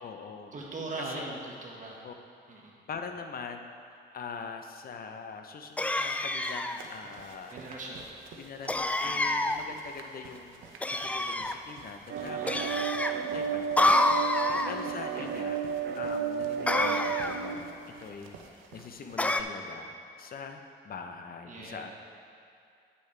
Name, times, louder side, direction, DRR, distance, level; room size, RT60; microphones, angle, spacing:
voice 1, 0.0-0.5 1.0-1.3 2.0-2.1 2.9-7.6 8.4-10.6 10.9-12.6 13.2-14.0 14.3-15.6 16.0-21.9, left 5 dB, 50° left, 5 dB, 0.7 m, -43 dB
voice 2, 0.5-2.0 2.5-2.7 7.5-8.1 9.0-9.3 12.2-13.5 14.0-14.8 21.4-21.9, right 2 dB, 40° right, -3 dB, 1.7 m, -42 dB
sound 1, 5.8-6.8 8.7-9.6 10.8-11.6 12.5-13.1 13.8-14.7 16.7-17.4 19.2-19.4, left 1 dB, 5° left, 0.3 m, -27 dB
sound 2, 6.0-19.2, right 4 dB, 85° right, 0.8 m, -52 dB
sound 3, 12.1-17.5, right 7 dB, 55° right, 0.7 m, -32 dB
9.1 x 8.5 x 3.4 m, 2.4 s
cardioid pair, 90°, 20 cm